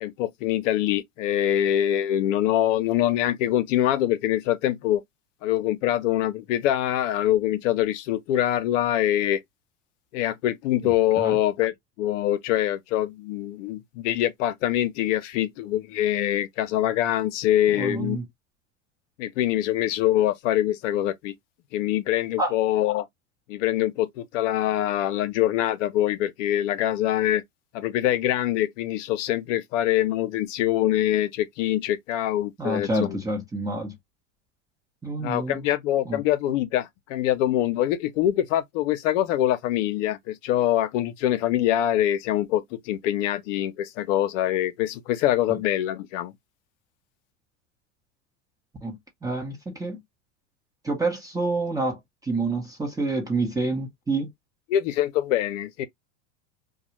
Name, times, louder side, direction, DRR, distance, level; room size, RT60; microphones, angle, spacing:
voice 1, 0.0-5.0 5.4-9.4 10.1-18.2 19.2-21.3 21.7-23.1 23.5-27.4 27.7-33.2 35.2-46.3 54.7-55.9, left 12 dB, 65° left, 0.7 m, -24 dB
voice 2, 17.7-18.2 22.4-22.5 32.6-33.9 35.0-35.6 36.1-36.2 48.8-49.0 49.2-50.0 50.8-54.3, right 2 dB, 10° right, 0.8 m, -28 dB
2.4 x 2.2 x 2.8 m
hypercardioid pair, 110°, 39 cm